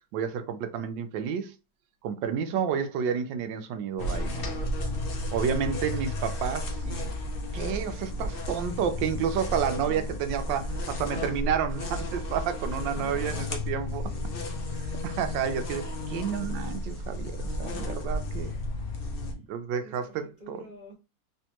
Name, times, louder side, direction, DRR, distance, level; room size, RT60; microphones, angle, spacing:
voice 1, 0.1-1.5 2.0-4.5 5.3-7.1 7.5-14.0 14.7-18.5 19.4-20.6, right 7 dB, 80° right, 1.3 m, -30 dB
sound 1, 4.0-19.3, left 1 dB, 80° left, 0.5 m, -33 dB
voice 2, 12.4-14.7 18.4-18.8 19.2-19.4 19.8-20.9, equal, 25° right, 1.6 m, -50 dB
3.4 x 3.3 x 2.9 m
omnidirectional pair, 2.0 m